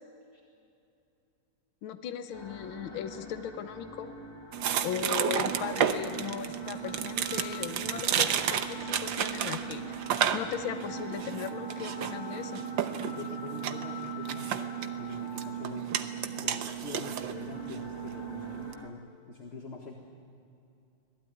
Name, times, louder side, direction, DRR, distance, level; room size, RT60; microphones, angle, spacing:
voice 1, 1.8-4.1 4.8-10.0 10.3-12.6, left 8 dB, 70° left, 9 dB, 1.8 m, -38 dB
sound 1, 2.3-18.9, left 3 dB, 10° left, 1.9 m, -45 dB
sound 2, 4.5-18.7, right 9 dB, 65° right, 1.6 m, -32 dB
voice 2, 13.0-16.1 16.4-19.9, left 3 dB, 30° left, 2 dB, 1.7 m, -45 dB
25.0 x 18.0 x 9.4 m, 2.6 s
omnidirectional pair, 2.4 m